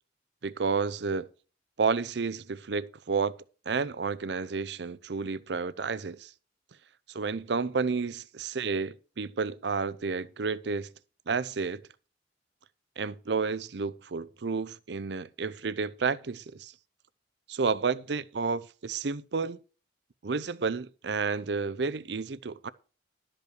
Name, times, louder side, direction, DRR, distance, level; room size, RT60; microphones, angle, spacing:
voice 1, 0.4-1.3 1.8-3.3 3.7-6.3 7.1-10.9 11.3-11.8 13.0-16.7 17.5-19.6 20.2-22.7, right 4 dB, 65° right, 0.6 m, -31 dB
12.0 x 5.5 x 6.5 m
head